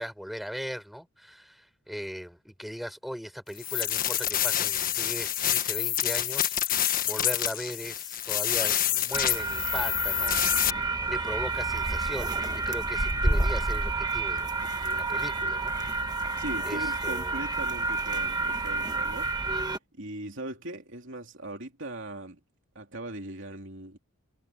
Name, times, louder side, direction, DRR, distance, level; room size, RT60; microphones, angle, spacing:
voice 1, 0.0-10.6 11.1-14.5 14.8-16.0 16.6-17.4, equal, ahead, 5.7 m, -38 dB
sound 1, 3.6-10.7, left 11 dB, 40° left, 1.5 m, -27 dB
sound 2, 9.1-19.8, right 3 dB, 20° right, 1.3 m, -29 dB
voice 2, 16.4-19.3 19.9-22.4 22.7-24.0, right 1 dB, 55° right, 3.3 m, -39 dB
head